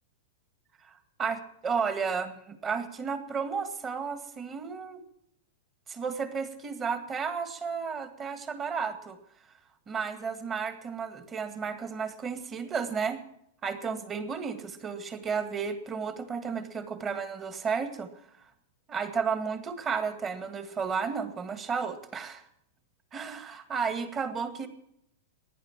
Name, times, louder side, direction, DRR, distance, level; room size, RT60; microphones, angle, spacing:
voice 1, 0.8-5.0 5.9-9.2 9.9-13.2 13.6-18.2 18.9-22.4 23.1-24.7, right 6 dB, 20° right, 10 dB, 2.1 m, -33 dB
16.0 x 11.0 x 7.4 m, 0.74 s
hypercardioid pair, 135°, 0 cm